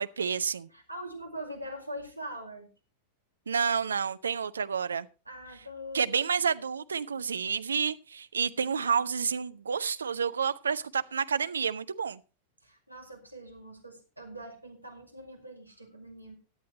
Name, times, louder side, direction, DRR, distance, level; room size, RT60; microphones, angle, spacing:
voice 1, 0.0-0.7 3.5-5.1 5.9-12.2, right 6 dB, 70° right, 0.5 m, -29 dB
voice 2, 0.7-2.7 5.3-6.2 12.6-16.4, equal, 85° right, 2.2 m, -43 dB
17.0 x 10.5 x 2.9 m
figure-of-eight pair, 90°, 0 cm